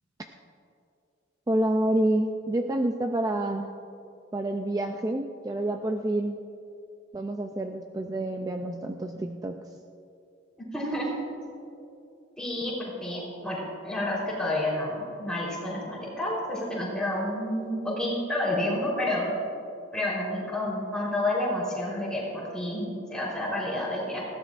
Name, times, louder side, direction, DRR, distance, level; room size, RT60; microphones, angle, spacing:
voice 1, 1.5-3.7 4.3-6.4 7.1-9.7, right 1 dB, 20° right, 5 dB, 0.4 m, -28 dB
voice 2, 10.7-11.1 12.4-12.8 13.0-19.3 19.9-24.3, left 1 dB, 5° left, -6 dB, 3.7 m, -29 dB
19.5 x 15.5 x 2.5 m, 2.6 s
head